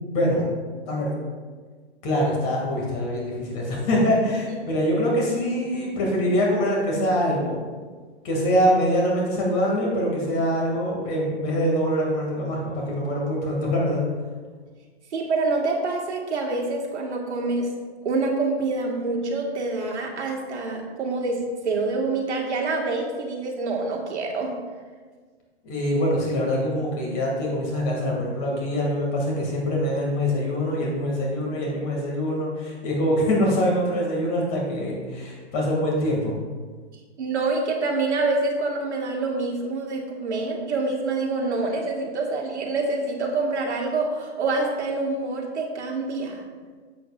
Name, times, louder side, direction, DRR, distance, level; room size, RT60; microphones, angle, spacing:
voice 1, 0.1-0.5 0.9-1.1 2.0-7.6 8.2-14.0 25.6-36.3, equal, 30° left, -2 dB, 2.5 m, -24 dB
voice 2, 15.1-17.7 18.0-24.6 37.2-46.4, right 3 dB, 85° right, -1 dB, 1.9 m, -26 dB
10.0 x 7.6 x 2.5 m, 1.5 s
hypercardioid pair, 145°, 34 cm